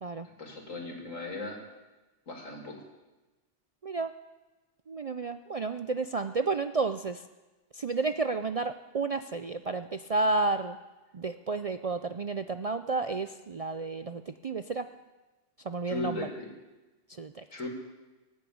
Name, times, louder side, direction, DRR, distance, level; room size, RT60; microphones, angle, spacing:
voice 1, 0.4-1.6 2.3-2.8 15.9-16.5 17.5-17.7, left 2 dB, 90° left, 2 dB, 3.0 m, -37 dB
voice 2, 4.9-7.2 7.7-10.8 11.1-14.9 15.6-16.2 17.2-17.4, right 3 dB, 60° right, 9 dB, 0.3 m, -31 dB
17.0 x 9.4 x 8.6 m, 1.2 s
omnidirectional pair, 1.3 m